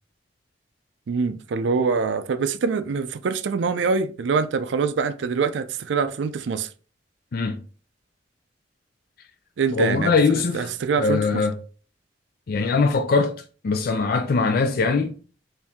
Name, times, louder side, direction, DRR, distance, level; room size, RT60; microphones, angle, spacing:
voice 1, 1.1-6.7 9.6-11.5, right 5 dB, 80° right, 0.4 m, -24 dB
voice 2, 9.7-10.7 11.0-11.5 12.5-13.3 13.6-15.1, left 4 dB, 55° left, 0.4 m, -21 dB
4.4 x 2.6 x 3.5 m
head